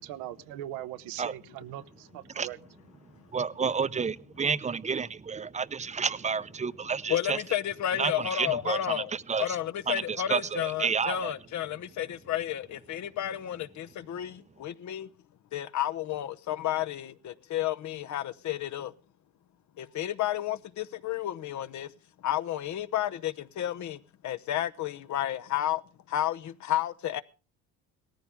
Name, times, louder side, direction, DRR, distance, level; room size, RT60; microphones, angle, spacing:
voice 1, 0.1-2.6, right 13 dB, 90° right, 0.9 m, -40 dB
voice 2, 3.3-7.4 8.0-9.6 9.9-11.3, right 5 dB, 20° right, 0.6 m, -30 dB
voice 3, 7.1-9.1 9.4-15.1 15.5-18.9 19.8-21.9 22.2-25.8 26.1-27.2, left 12 dB, 55° left, 0.9 m, -31 dB
18.0 x 14.5 x 3.6 m
cardioid pair, 90°, 34 cm